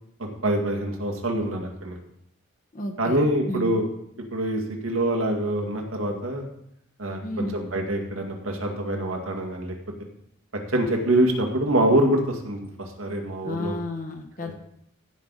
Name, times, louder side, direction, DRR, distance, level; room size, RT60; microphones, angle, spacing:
voice 1, 0.4-2.0 3.0-3.9 4.3-6.4 7.0-9.7 10.7-13.7 14.4-14.5, right 1 dB, 85° right, 2 dB, 2.0 m, -25 dB
voice 2, 2.7-3.8 7.2-7.6 13.4-14.5, left 1 dB, 40° left, 3 dB, 1.3 m, -32 dB
15.0 x 5.8 x 4.0 m, 0.73 s
head